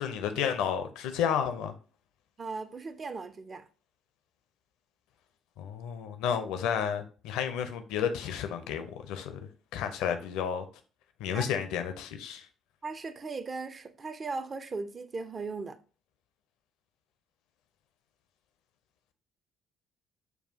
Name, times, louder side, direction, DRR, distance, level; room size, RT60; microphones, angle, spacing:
voice 1, 0.0-1.7 5.6-9.4 9.7-10.7 11.2-12.5, left 8 dB, 65° left, 0.5 m, -31 dB
voice 2, 2.4-3.7 11.3-11.6 12.8-15.8, right 4 dB, 35° right, 0.5 m, -38 dB
6.8 x 2.3 x 2.7 m
figure-of-eight pair, 45°, 0 cm